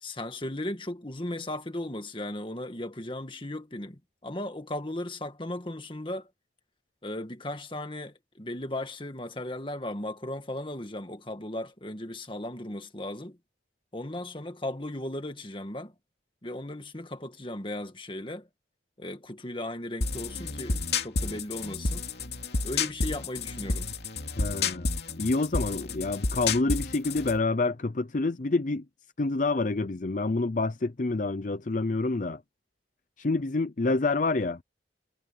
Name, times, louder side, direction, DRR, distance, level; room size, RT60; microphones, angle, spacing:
voice 1, 0.0-6.3 7.0-13.4 13.9-15.9 16.4-18.5 19.0-22.0 22.6-23.9, left 1 dB, 30° left, 1.8 m, -36 dB
sound 1, 20.0-27.4, left 3 dB, 60° left, 3.0 m, -30 dB
voice 2, 24.4-28.8 29.2-32.4 33.2-34.6, left 3 dB, 45° left, 0.6 m, -28 dB
head